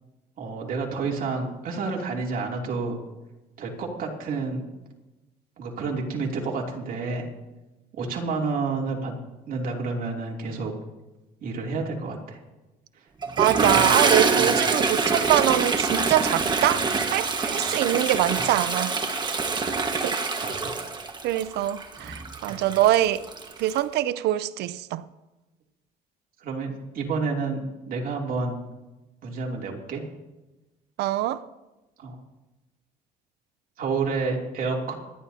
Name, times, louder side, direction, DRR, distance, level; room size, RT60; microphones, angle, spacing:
voice 1, 0.4-3.0 3.6-4.6 5.6-7.3 7.9-9.2 9.5-10.7 11.4-12.4 13.6-13.9 14.3-14.5 17.5-17.8 19.6-19.7 20.4-20.7 22.5-22.6 26.4-28.6 29.2-30.0 32.0-32.2 33.8-34.9, right 4 dB, 55° right, 2.9 m, -30 dB
Toilet flush, 13.2-23.8, right 4 dB, 25° right, 1.5 m, -25 dB
voice 2, 13.4-18.9 20.0-20.2 21.2-23.2 23.6-25.0 31.0-31.4, right 13 dB, 80° right, 0.5 m, -24 dB
26.0 x 10.5 x 2.8 m
cardioid pair, 110°, 17 cm